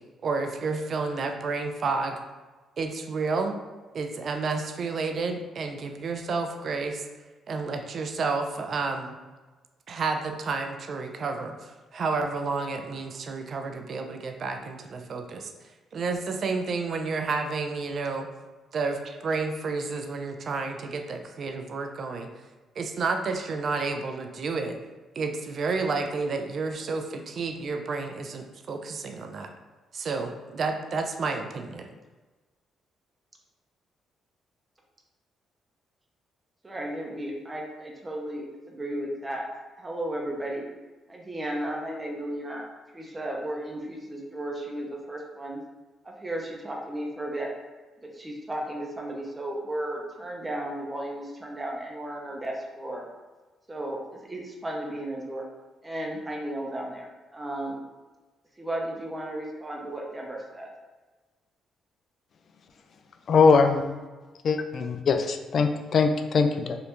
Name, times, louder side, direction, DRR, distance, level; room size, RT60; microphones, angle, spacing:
voice 1, 0.2-2.2 2.8-3.6 3.9-7.0 7.5-9.2 9.9-15.5 15.9-18.3 18.7-22.3 22.8-24.8 25.2-29.5 29.9-31.9, right 4 dB, 55° right, 5 dB, 0.4 m, -30 dB
voice 2, 36.6-39.5 39.8-40.6 41.1-42.7 42.9-45.6 46.0-47.5 48.0-53.0 53.7-55.4 55.8-57.8 58.6-60.7, right 1 dB, 20° right, 0 dB, 0.7 m, -34 dB
voice 3, 63.3-64.0 64.4-66.8, left 5 dB, 55° left, 6 dB, 0.3 m, -22 dB
3.3 x 2.5 x 2.9 m, 1.3 s
cardioid pair, 90°, 0 cm